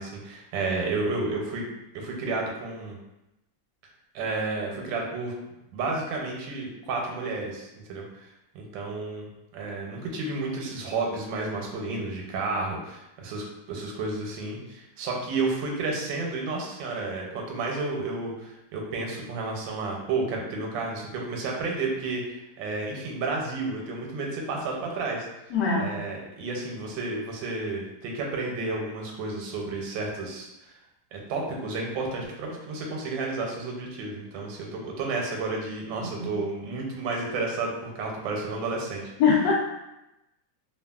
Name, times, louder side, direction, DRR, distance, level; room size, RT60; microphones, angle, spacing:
voice 1, 0.0-1.6 1.9-3.0 4.1-5.3 5.7-8.3 8.5-9.3 9.5-30.7 31.1-39.1, right 3 dB, 85° right, 0 dB, 1.3 m, -31 dB
voice 2, 25.5-25.9 39.2-39.5, left 5 dB, 75° left, -2 dB, 1.1 m, -21 dB
3.0 x 2.4 x 2.3 m, 0.92 s
omnidirectional pair, 2.0 m